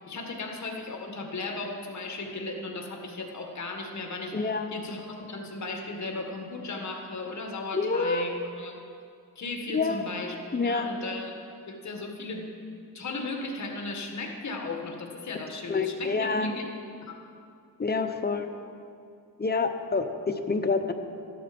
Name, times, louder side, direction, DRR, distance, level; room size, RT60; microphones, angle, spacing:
voice 1, 0.1-8.8 9.4-10.4 10.6-11.3 11.7-12.5 12.9-16.6 17.1-17.2, left 3 dB, 50° left, 2 dB, 1.7 m, -36 dB
voice 2, 4.3-4.7 7.7-8.3 9.7-10.0 10.5-10.9 15.7-16.5 17.8-18.5 19.4-20.9, left 4 dB, 25° left, 6 dB, 0.8 m, -27 dB
14.5 x 12.0 x 5.2 m, 2.5 s
wide cardioid pair, 115°, 36 cm